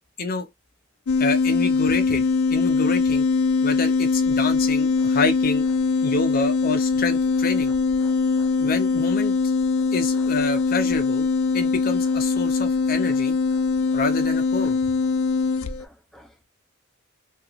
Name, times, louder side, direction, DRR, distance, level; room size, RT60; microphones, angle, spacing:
sound 1, 1.1-15.8, left 4 dB, 85° left, 0.4 m, -22 dB
voice 1, 1.2-3.3 3.6-5.6 6.0-7.7 8.6-9.3 9.9-11.3 11.5-13.4 13.9-14.8, left 3 dB, 45° left, 0.7 m, -28 dB
voice 2, 8.0-8.5 14.6-14.7 15.8-16.4, equal, ahead, 0.4 m, -51 dB
2.9 x 2.3 x 2.3 m
head